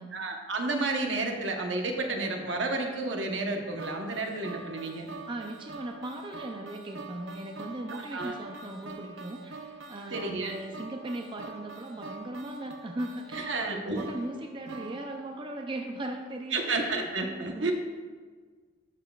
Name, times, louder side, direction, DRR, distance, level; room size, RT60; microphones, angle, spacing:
voice 1, 0.1-5.1 7.9-8.3 10.1-10.5 13.3-14.1 16.5-17.7, right 2 dB, 70° right, 3 dB, 1.0 m, -31 dB
sound 1, 3.8-16.0, right 3 dB, 90° right, 0.7 m, -44 dB
voice 2, 5.3-16.9 17.5-17.7, right 1 dB, 25° right, 3 dB, 0.5 m, -38 dB
12.0 x 7.1 x 2.4 m, 1.5 s
head